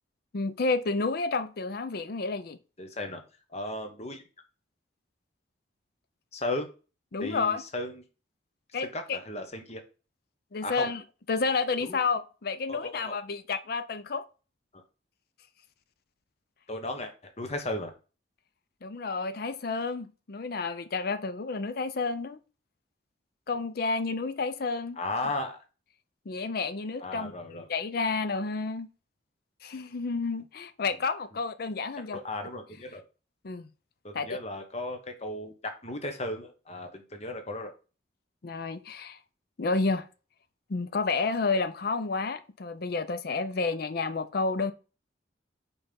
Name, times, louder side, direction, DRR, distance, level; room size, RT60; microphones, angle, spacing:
voice 1, 0.3-2.6 7.1-7.6 8.7-9.2 10.5-11.0 11.3-14.3 18.8-22.4 23.5-25.0 26.3-27.3 27.7-28.9 29.6-32.2 33.4-33.7 34.1-34.4 38.4-39.2 39.6-40.1 40.7-44.7, left 4 dB, 55° left, 0.5 m, -30 dB
voice 2, 2.8-3.2 3.5-4.2 6.3-6.7 7.2-8.0 8.8-9.8 10.6-10.9 11.8-12.0 12.7-13.2 14.7-14.8 16.7-17.9 25.0-25.6 27.0-27.7 32.1-33.0 34.0-37.7, left 2 dB, 35° left, 1.2 m, -35 dB
5.6 x 4.2 x 5.2 m
head